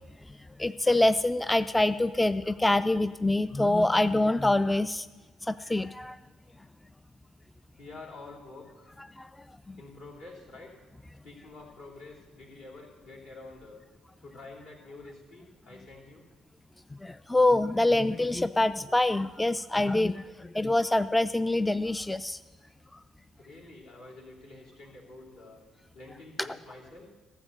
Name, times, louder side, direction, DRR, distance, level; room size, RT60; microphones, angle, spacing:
voice 1, 0.6-5.1 5.4-6.2 9.2-9.3 9.7-9.8 17.0-22.4, left 2 dB, 10° left, 13 dB, 0.3 m, -25 dB
voice 2, 7.8-9.0 9.8-10.7 11.2-13.8 14.2-16.3 23.4-25.6 25.9-27.1, left 3 dB, 70° left, -4 dB, 2.8 m, -48 dB
14.5 x 7.3 x 6.5 m, 1.3 s
figure-of-eight pair, 45°, 0 cm